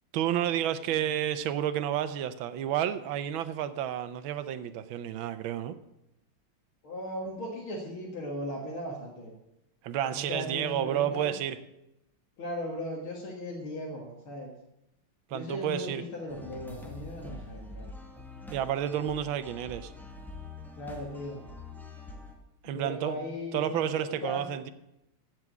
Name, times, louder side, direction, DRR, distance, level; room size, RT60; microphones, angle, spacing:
voice 1, 0.1-5.7 9.8-11.6 15.3-16.0 18.5-19.9 22.6-23.2 23.5-24.7, right 10 dB, 80° right, 1.5 m, -30 dB
voice 2, 6.8-9.3 10.1-11.3 12.4-14.5 15.3-17.9 20.8-21.4 22.6-24.5, left 1 dB, 90° left, 2.6 m, -37 dB
sound 1, 16.3-22.3, left 2 dB, ahead, 1.5 m, -45 dB
15.5 x 6.1 x 8.2 m
omnidirectional pair, 2.2 m